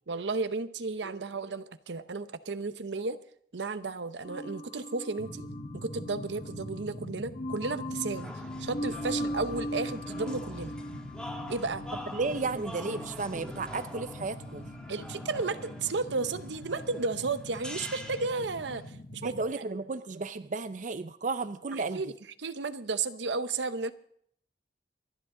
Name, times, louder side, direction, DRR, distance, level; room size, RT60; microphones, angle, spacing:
voice 1, 0.1-3.2 3.5-5.5 5.7-8.3 8.6-10.7 11.5-11.9 14.9-19.3 21.9-22.1 22.4-23.9, right 3 dB, 85° right, 11 dB, 0.8 m, -33 dB
sound 1, 4.2-16.5, equal, 40° left, 1.6 m, -41 dB
sound 2, 5.2-19.4, left 1 dB, 60° left, 1.2 m, -44 dB
sound 3, 8.1-18.9, equal, 5° left, 1.4 m, -46 dB
voice 2, 12.1-14.6 19.2-22.0, right 3 dB, 45° right, 12 dB, 0.5 m, -33 dB
27.0 x 10.5 x 3.8 m, 0.64 s
head